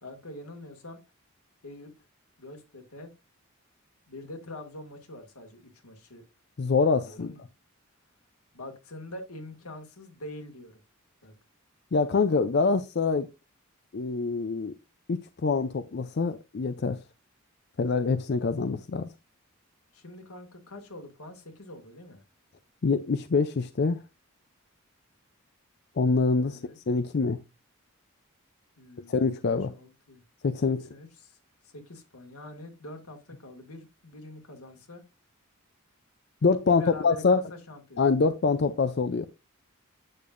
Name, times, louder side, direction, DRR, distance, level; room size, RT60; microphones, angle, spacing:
voice 1, 0.0-1.0 1.6-2.1 2.4-3.1 4.1-6.2 6.9-7.4 8.5-10.8 11.2-11.3 19.9-22.2 26.4-26.8 28.8-30.2 30.9-31.4 31.6-35.0 36.6-38.0, left 1 dB, 90° left, 2.0 m, -44 dB
voice 2, 6.6-7.3 11.9-13.3 13.9-14.7 15.1-17.0 17.8-19.1 22.8-24.0 26.0-26.6 26.9-27.4 29.1-29.7 30.4-30.9 36.4-37.4 38.0-39.3, left 4 dB, 50° left, 0.4 m, -25 dB
8.6 x 6.6 x 2.5 m
head